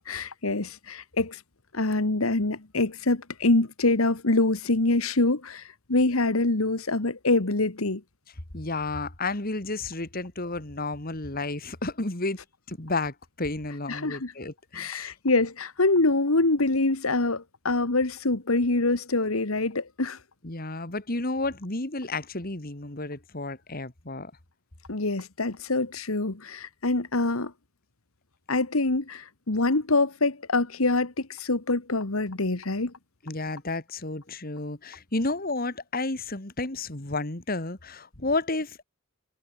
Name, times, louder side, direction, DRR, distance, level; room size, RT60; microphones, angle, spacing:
voice 1, 0.1-1.4 1.7-8.0 13.9-14.3 14.7-20.2 24.9-27.5 28.5-32.9, left 2 dB, 80° left, 1.7 m, -25 dB
voice 2, 8.5-12.4 12.7-15.1 20.4-24.3 33.2-38.8, left 2 dB, 45° left, 2.4 m, -31 dB
head